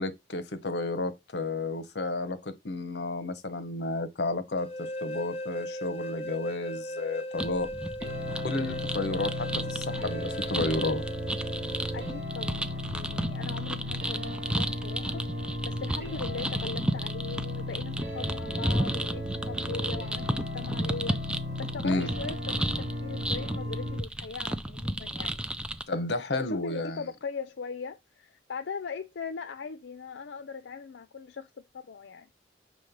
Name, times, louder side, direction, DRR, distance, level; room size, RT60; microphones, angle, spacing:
voice 1, 0.0-7.7 8.4-11.0 21.8-22.1 25.9-27.0, left 2 dB, 70° left, 0.9 m, -32 dB
sound 1, 4.6-12.2, equal, 35° left, 0.6 m, -38 dB
sound 2, 7.4-25.8, right 1 dB, 5° right, 0.4 m, -34 dB
sound 3, 8.0-24.0, left 1 dB, 70° right, 2.9 m, -36 dB
voice 2, 11.9-21.2 21.6-25.4 26.3-32.3, left 5 dB, 85° left, 0.5 m, -40 dB
6.3 x 3.2 x 5.2 m
head